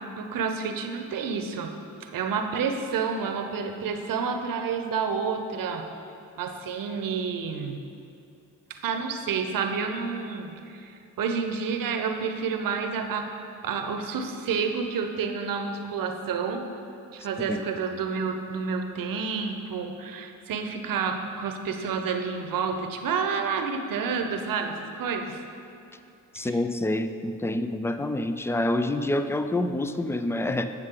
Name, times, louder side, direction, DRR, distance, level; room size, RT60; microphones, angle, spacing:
voice 1, 0.2-1.7 2.0-5.8 6.4-7.8 8.7-13.3 13.6-16.6 17.1-25.4 26.4-26.6, right 5 dB, 65° right, 5 dB, 0.8 m, -29 dB
voice 2, 26.3-30.6, left 1 dB, 5° left, 9 dB, 0.3 m, -27 dB
8.1 x 6.4 x 3.7 m, 2.7 s
supercardioid pair, 65°, 37 cm